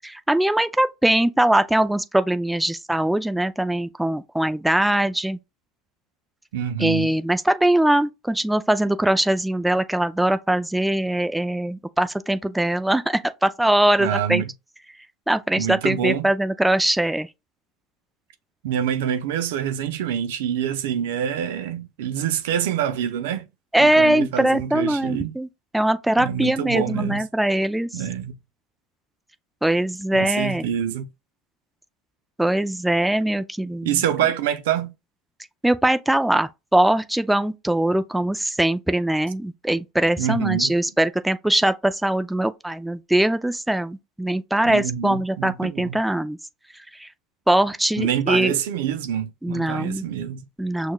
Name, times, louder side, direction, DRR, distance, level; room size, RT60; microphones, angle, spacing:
voice 1, 0.3-5.4 6.8-14.4 15.3-17.3 23.7-25.5 25.7-28.0 29.6-30.7 32.4-34.0 35.6-46.4 46.9-47.1 47.5-48.5 49.4-50.0 50.6-50.9, right 1 dB, 5° right, 0.4 m, -21 dB
voice 2, 6.5-7.1 14.0-14.5 15.5-16.3 18.6-23.5 23.8-25.3 26.2-27.2 27.9-28.4 30.1-31.1 33.8-34.9 40.2-40.7 44.7-46.0 48.0-50.5, right 9 dB, 80° right, 0.6 m, -26 dB
6.2 x 2.3 x 2.3 m
supercardioid pair, 95°, 0 cm